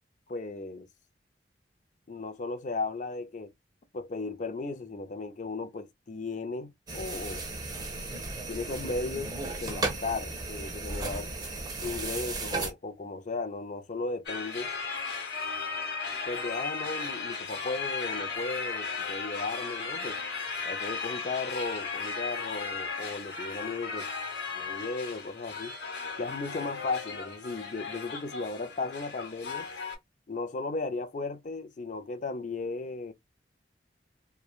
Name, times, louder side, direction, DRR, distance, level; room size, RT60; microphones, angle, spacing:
voice 1, 0.3-0.9 2.1-3.5 3.9-7.4 8.5-9.3 9.6-11.3 11.8-14.7 16.3-20.2 20.7-24.1 24.5-25.7 26.2-29.7 30.3-33.1, left 3 dB, 45° left, 0.4 m, -35 dB
sound 1, 6.9-12.7, right 2 dB, 20° right, 0.6 m, -35 dB
sound 2, 14.3-30.0, left 4 dB, 75° left, 1.1 m, -36 dB
2.9 x 2.2 x 2.3 m
head